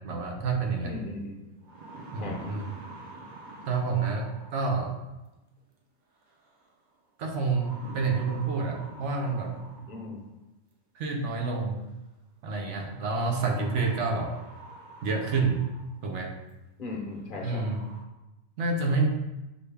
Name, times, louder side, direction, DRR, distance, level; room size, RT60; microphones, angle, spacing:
voice 1, 0.0-0.9 2.1-2.7 3.7-5.0 7.2-9.7 10.9-11.8 12.4-14.3 15.0-15.6 16.0-16.3 17.4-17.8 18.6-19.1, right 4 dB, 80° right, 2 dB, 1.0 m, -28 dB
voice 2, 0.8-1.4 2.2-2.4 9.9-10.2 16.8-17.7, left 3 dB, 50° left, 0 dB, 0.8 m, -37 dB
sound 1, 0.9-1.0 1.4-4.9 6.3-6.7 7.5-10.3 11.5-11.6 13.1-16.0 16.5-16.6 17.1-17.2 17.5-18.0, right 2 dB, 50° right, 0.7 m, -46 dB
6.0 x 2.2 x 3.3 m, 1.0 s
omnidirectional pair, 1.2 m